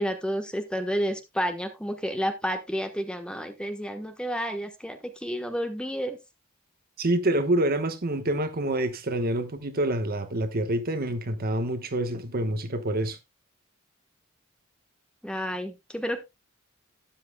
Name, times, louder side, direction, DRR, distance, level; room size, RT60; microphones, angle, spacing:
voice 1, 0.0-6.2 15.2-16.2, equal, 5° left, 1.2 m, -30 dB
voice 2, 7.0-13.2, right 1 dB, 45° right, 1.1 m, -27 dB
12.5 x 10.5 x 2.2 m
head